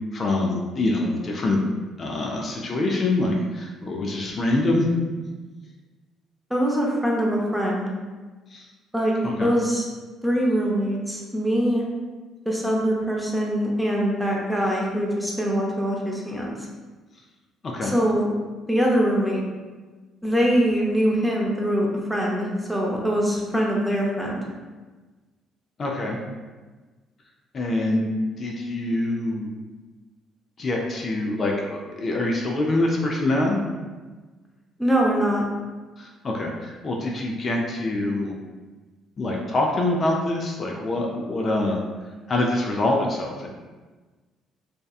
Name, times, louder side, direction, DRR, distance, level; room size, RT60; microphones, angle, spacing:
voice 1, 0.1-1.6 2.0-4.9 8.5-8.7 9.2-9.5 17.6-17.9 25.8-26.2 27.5-28.0 28.4-29.5 30.6-33.6 36.0-38.4 39.2-41.8 42.3-43.5, left 2 dB, 45° left, -1 dB, 0.4 m, -25 dB
voice 2, 6.5-7.9 8.9-9.8 10.2-11.8 12.5-16.5 17.8-18.3 18.7-19.4 20.2-24.4 34.8-35.4, equal, 5° right, -3 dB, 0.6 m, -23 dB
2.7 x 2.2 x 2.3 m, 1.3 s
supercardioid pair, 80°, 0 cm